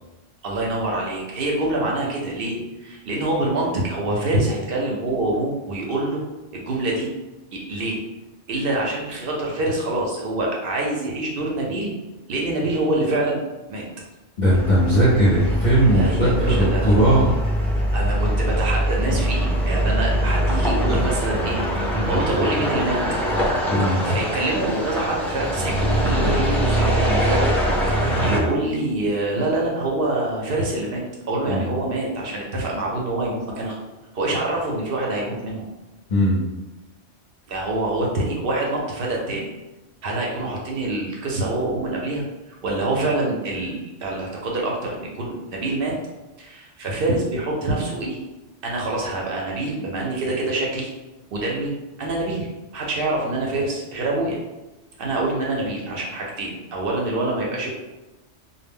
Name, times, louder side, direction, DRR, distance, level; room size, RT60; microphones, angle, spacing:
voice 1, 0.4-6.2 6.5-7.1 7.5-8.0 8.5-11.9 12.3-13.4 13.7-13.9 15.9-17.0 17.9-21.6 22.1-23.1 24.0-27.5 27.9-33.8 34.1-35.6 37.5-39.5 40.0-46.0 46.4-48.2 48.6-50.9 51.3-51.7 52.0-54.4 55.0-57.7, right 2 dB, 60° right, -2 dB, 0.7 m, -25 dB
voice 2, 14.4-17.3 20.8-21.0 21.9-22.2 23.7-24.0 31.5-31.7 36.1-36.4, right 1 dB, 50° left, -8 dB, 0.7 m, -18 dB
sound 1, 14.5-28.4, equal, ahead, 0.4 m, -23 dB
2.1 x 2.0 x 3.5 m, 1.0 s
omnidirectional pair, 1.2 m